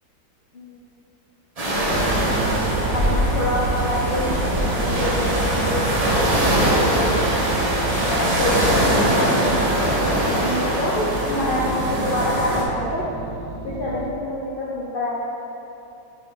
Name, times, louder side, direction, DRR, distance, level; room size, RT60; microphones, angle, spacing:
sound 1, 1.6-12.6, equal, 30° right, 0.8 m, -22 dB
sound 2, 1.9-14.1, right 3 dB, 70° right, 1.0 m, -29 dB
voice 1, 2.9-7.2 8.1-9.6 10.3-13.1 13.6-15.1, left 1 dB, 70° left, -6 dB, 0.5 m, -27 dB
5.8 x 4.0 x 6.2 m, 2.9 s
omnidirectional pair, 1.9 m